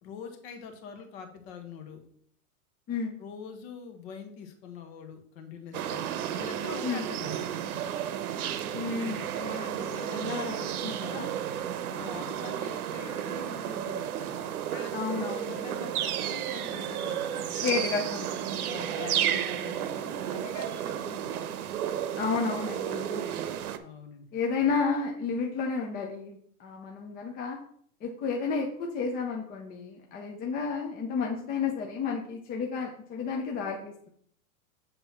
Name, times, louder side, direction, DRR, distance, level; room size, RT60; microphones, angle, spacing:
voice 1, 0.0-2.0 3.2-6.0 6.3-7.4 11.9-14.4 14.7-17.9 20.0-21.4 23.8-24.3, left 6 dB, 45° left, 5 dB, 1.6 m, -44 dB
voice 2, 2.9-3.2 6.8-7.1 8.7-11.3 14.9-15.9 17.6-20.0 22.2-23.4 24.3-27.6 28.0-34.1, left 5 dB, 20° left, 0 dB, 0.8 m, -32 dB
sound 1, 5.7-23.8, right 10 dB, 80° right, 0.9 m, -32 dB
7.7 x 3.9 x 5.8 m, 0.63 s
supercardioid pair, 150°, 43 cm